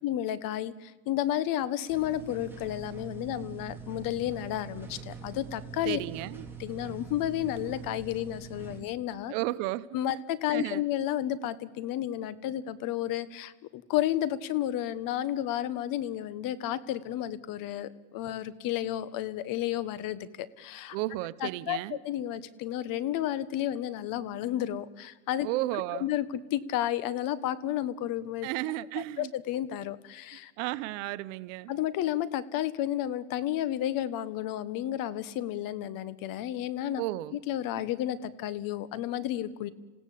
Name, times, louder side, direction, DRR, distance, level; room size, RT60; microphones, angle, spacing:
voice 1, 0.0-6.0 6.6-9.3 9.9-21.0 21.4-21.8 22.0-25.5 26.0-28.5 29.2-30.5 31.7-37.0 37.3-39.7, left 12 dB, 65° left, 1.4 m, -32 dB
sound 1, 1.9-8.8, right 5 dB, 5° right, 3.7 m, -44 dB
voice 2, 5.8-6.5 8.8-8.9 9.3-10.2 10.5-10.8 20.9-22.0 25.4-26.1 28.4-29.3 30.6-31.7 37.0-37.4, right 17 dB, 90° right, 0.9 m, -33 dB
28.0 x 16.5 x 8.5 m
cardioid pair, 120°, 36 cm